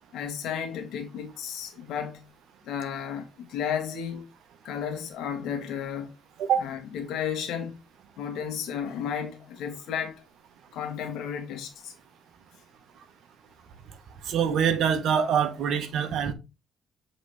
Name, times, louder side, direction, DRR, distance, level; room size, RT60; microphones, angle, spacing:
voice 1, 0.1-2.2 2.6-4.3 4.6-6.1 6.6-7.8 8.2-10.2 10.7-11.9, left 8 dB, 85° left, 1.7 m, -33 dB
voice 2, 14.2-16.3, right 7 dB, 75° right, 1.1 m, -24 dB
7.7 x 3.9 x 3.2 m
cardioid pair, 90°, 0 cm